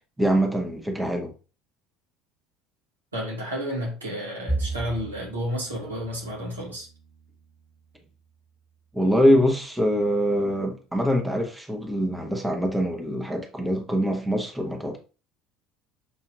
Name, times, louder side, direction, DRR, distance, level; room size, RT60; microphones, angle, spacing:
voice 1, 0.2-1.3 8.9-15.0, equal, 10° right, 0.9 m, -24 dB
voice 2, 3.1-6.9, equal, 80° right, 1.2 m, -31 dB
Bowed string instrument, 4.5-8.0, right 2 dB, 10° left, 1.5 m, -35 dB
6.0 x 2.7 x 2.5 m
figure-of-eight pair, 65°, 0 cm